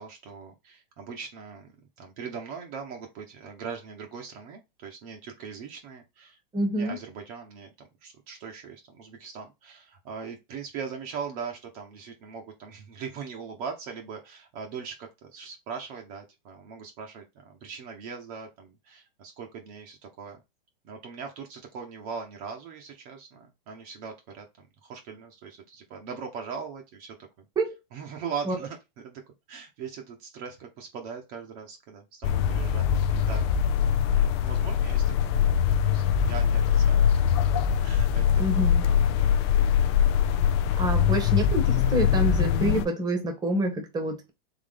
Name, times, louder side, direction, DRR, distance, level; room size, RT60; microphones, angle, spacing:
voice 1, 0.0-1.7 2.0-6.4 6.7-20.4 20.8-27.4 27.9-28.8 29.0-29.2 29.5-33.5 33.8-34.0 34.4-37.4 37.8-39.0, right 6 dB, 40° right, 1.0 m, -40 dB
voice 2, 6.5-7.0 27.6-27.7 28.5-28.6 38.4-38.8 40.8-44.3, equal, 15° right, 1.1 m, -27 dB
sound 1, 32.2-42.9, left 8 dB, 30° left, 0.4 m, -23 dB
3.9 x 3.2 x 3.3 m
hypercardioid pair, 135°, 30 cm